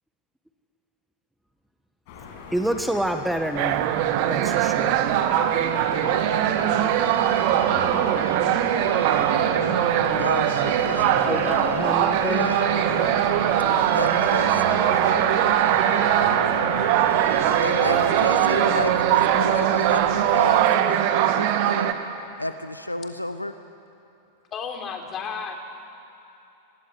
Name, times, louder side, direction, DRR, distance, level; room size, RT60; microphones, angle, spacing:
sound 1, 2.1-20.7, left 4 dB, 50° left, 5.6 m, -41 dB
voice 1, 2.5-3.9 4.3-5.0 11.2-12.5, right 1 dB, 5° right, 6 dB, 1.6 m, -27 dB
sound 2, 3.5-21.9, right 11 dB, 50° right, 1.8 m, -21 dB
sound 3, 5.2-21.3, right 3 dB, 70° right, 4.9 m, -31 dB
voice 2, 10.2-11.0 12.2-12.6 13.9-15.9 17.6-21.9 22.4-23.6, left 1 dB, 90° left, 11 dB, 1.0 m, -32 dB
voice 3, 24.5-25.6, left 6 dB, 30° left, 4 dB, 3.7 m, -32 dB
26.0 x 19.0 x 9.8 m, 2.9 s
figure-of-eight pair, 90°, 0 cm